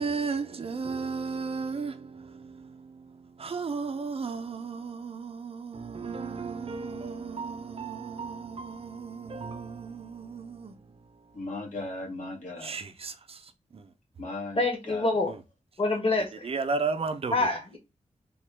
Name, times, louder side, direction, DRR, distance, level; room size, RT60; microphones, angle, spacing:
voice 1, 0.0-10.7 12.6-13.4 13.7-13.8 16.4-17.4, right 4 dB, 50° right, 0.5 m, -34 dB
voice 2, 11.3-12.8 14.2-14.6 14.9-15.1, left 2 dB, 80° left, 1.4 m, -37 dB
voice 3, 14.5-15.3 15.8-16.5 17.3-17.8, left 2 dB, 45° left, 1.2 m, -26 dB
3.7 x 2.3 x 3.3 m
wide cardioid pair, 80°, 13 cm